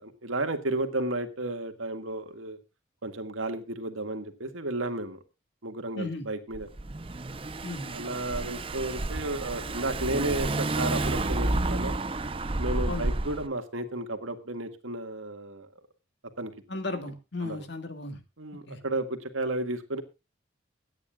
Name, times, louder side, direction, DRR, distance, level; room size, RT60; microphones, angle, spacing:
voice 1, 0.0-2.6 3.0-5.2 5.6-6.7 7.9-12.0 12.6-15.7 16.4-16.5 17.4-17.6 18.4-20.0, right 2 dB, 85° right, 7 dB, 1.9 m, -33 dB
voice 2, 5.9-6.3 7.6-8.0 12.9-13.1 16.7-18.2 18.7-18.8, left 2 dB, 60° left, 7 dB, 2.2 m, -35 dB
Car / Engine, 6.5-13.5, right 2 dB, 25° right, 0.7 m, -30 dB
23.5 x 9.7 x 2.4 m, 0.26 s
head